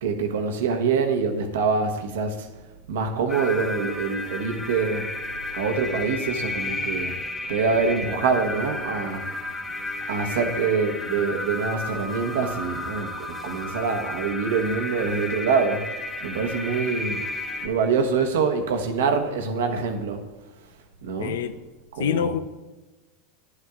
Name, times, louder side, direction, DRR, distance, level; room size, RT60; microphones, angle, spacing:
voice 1, 0.0-2.5 2.9-5.1 5.5-7.1 7.5-9.2 10.1-15.8 16.2-17.2 17.6-20.2 21.0-21.4 21.9-22.3, right 5 dB, 75° right, 1.0 m, -25 dB
sound 1, 3.3-17.7, left 2 dB, 10° left, 1.9 m, -32 dB
voice 2, 21.2-21.6 22.0-22.4, left 9 dB, 75° left, 0.4 m, -25 dB
10.0 x 9.7 x 2.4 m
hypercardioid pair, 100°, 0 cm